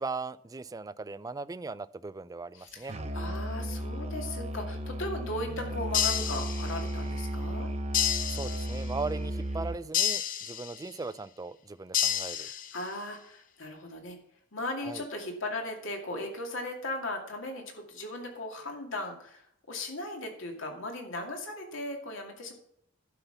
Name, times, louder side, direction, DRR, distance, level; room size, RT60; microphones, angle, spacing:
voice 1, 0.0-3.0 8.3-12.5 14.8-15.0, right 3 dB, 20° right, 16 dB, 0.4 m, -38 dB
voice 2, 2.5-7.7 12.3-14.2 14.5-22.5, left 1 dB, 75° left, 2 dB, 2.5 m, -37 dB
Musical instrument, 2.9-9.9, right 1 dB, 35° right, 0.9 m, -34 dB
sound 1, 5.9-7.0 7.9-9.0 9.9-11.0 11.9-13.0, left 10 dB, 45° left, 0.7 m, -30 dB
11.5 x 5.8 x 6.9 m, 0.69 s
head